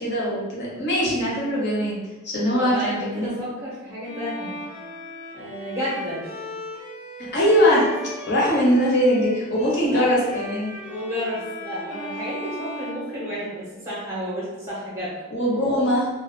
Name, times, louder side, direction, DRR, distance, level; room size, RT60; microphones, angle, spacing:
voice 1, 0.0-2.0 2.2-3.4 7.3-7.9 8.3-10.8 15.3-16.1, equal, 55° left, -5 dB, 0.8 m, -21 dB
voice 2, 2.6-4.6 5.3-6.4 9.9-10.1 10.9-15.1, equal, 15° right, -7 dB, 0.6 m, -31 dB
Bowed string instrument, 4.0-13.8, equal, 85° left, 0.8 m, -37 dB
2.3 x 2.0 x 2.6 m, 1.2 s
head